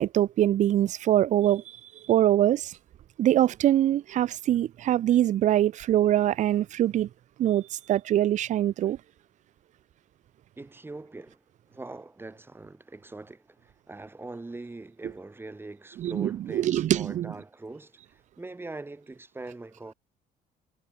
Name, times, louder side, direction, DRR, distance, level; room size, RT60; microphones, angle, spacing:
voice 1, 0.0-1.6 2.1-2.7 3.2-7.1 7.4-9.0 16.0-17.3, right 12 dB, 45° right, 0.4 m, -23 dB
voice 2, 10.6-19.9, right 2 dB, 15° right, 1.2 m, -42 dB
cardioid pair, 110°, 17 cm